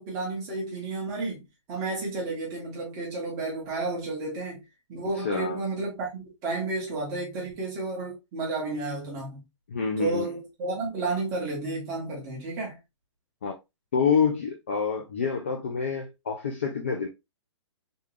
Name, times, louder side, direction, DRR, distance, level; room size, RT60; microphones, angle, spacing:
voice 1, 0.0-4.6 4.9-9.4 10.0-12.8, right 3 dB, 15° right, 1.2 m, -32 dB
voice 2, 5.2-5.6 9.7-10.3 13.4-13.5 13.9-17.1, left 6 dB, 25° left, 0.3 m, -27 dB
3.6 x 2.4 x 3.1 m
hypercardioid pair, 180°, 16 cm